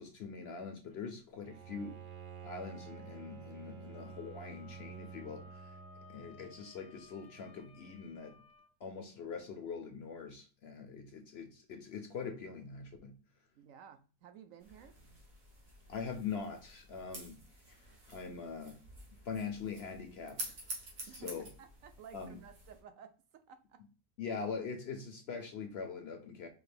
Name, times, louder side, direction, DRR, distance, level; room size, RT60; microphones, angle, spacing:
voice 1, 0.0-2.0 2.4-5.8 6.1-8.3 8.8-13.2 15.9-17.4 17.7-17.8 18.1-18.8 19.2-20.6 21.0-21.5 22.1-22.4 24.2-26.5, left 5 dB, 55° left, 0.8 m, -43 dB
Bowed string instrument, 1.4-6.8, right 6 dB, 50° right, 0.6 m, -50 dB
Wind instrument woodwind instrument, 3.9-8.7, left 4 dB, 80° left, 0.3 m, -59 dB
voice 2, 13.5-14.9 21.1-23.8, right 8 dB, 70° right, 0.9 m, -55 dB
sound 1, 14.6-22.8, right 2 dB, 85° right, 1.8 m, -49 dB
4.7 x 2.4 x 3.3 m
omnidirectional pair, 1.5 m